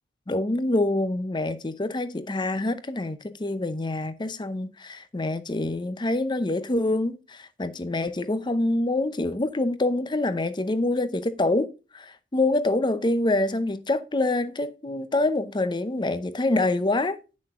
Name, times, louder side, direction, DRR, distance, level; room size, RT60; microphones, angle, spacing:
voice 1, 0.3-17.2, left 2 dB, 25° left, 0.6 m, -26 dB
9.7 x 6.3 x 3.6 m
head